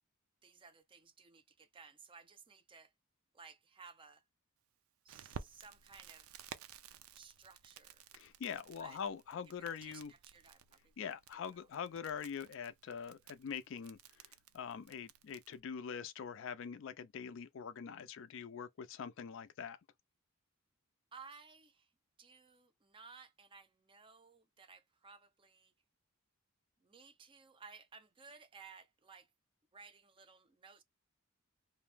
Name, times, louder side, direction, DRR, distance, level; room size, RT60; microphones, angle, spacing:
voice 1, 0.4-2.9 3.3-4.2 5.0-6.3 7.1-8.0 8.8-9.0 9.8-11.7 21.1-21.9 22.2-25.7 26.8-29.3 29.7-30.8, right 5 dB, 25° right, 0.4 m, -58 dB
Crackle, 5.1-15.6, right 7 dB, 80° right, 0.4 m, -55 dB
voice 2, 8.1-10.1 11.0-14.0 14.5-19.8, left 7 dB, 60° left, 0.4 m, -44 dB
2.6 x 2.0 x 3.3 m
head